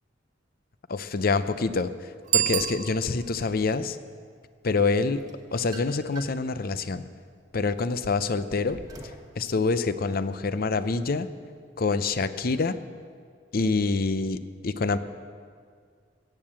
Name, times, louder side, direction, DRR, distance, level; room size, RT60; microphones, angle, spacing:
voice 1, 0.9-1.9 2.3-4.0 4.6-5.2 5.5-7.0 7.5-8.8 9.4-11.3 11.8-12.8 13.5-14.4 14.6-15.0, left 4 dB, 50° left, 13 dB, 0.6 m, -26 dB
Bicycle bell, 2.2-3.5, right 12 dB, 40° right, 0.4 m, -27 dB
sound 1, 5.2-6.5 7.0-9.3, right 2 dB, 20° right, 1.4 m, -46 dB
16.0 x 8.8 x 7.5 m, 2.1 s
head